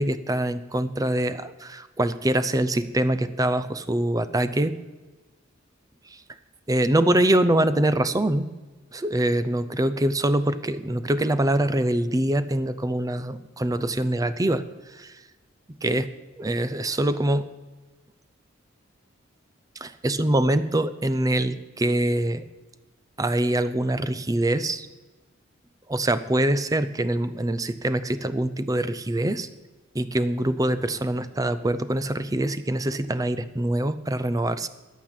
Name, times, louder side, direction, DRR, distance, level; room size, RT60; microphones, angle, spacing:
voice 1, 0.0-4.8 6.7-8.5 8.9-14.6 14.9-15.1 15.8-16.1 16.4-17.5 19.8-22.4 23.2-24.9 25.9-29.5 29.9-34.7, right 1 dB, 20° right, 14 dB, 0.5 m, -24 dB
10.0 x 8.8 x 9.1 m, 1.2 s
head